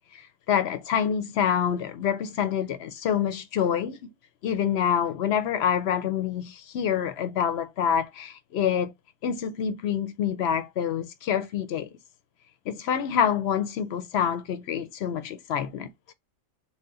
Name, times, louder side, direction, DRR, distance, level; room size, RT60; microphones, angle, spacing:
voice 1, 0.5-4.1 4.4-8.9 9.2-11.9 12.7-15.9, left 8 dB, 65° left, 0.8 m, -27 dB
4.2 x 2.1 x 3.6 m
omnidirectional pair, 1.3 m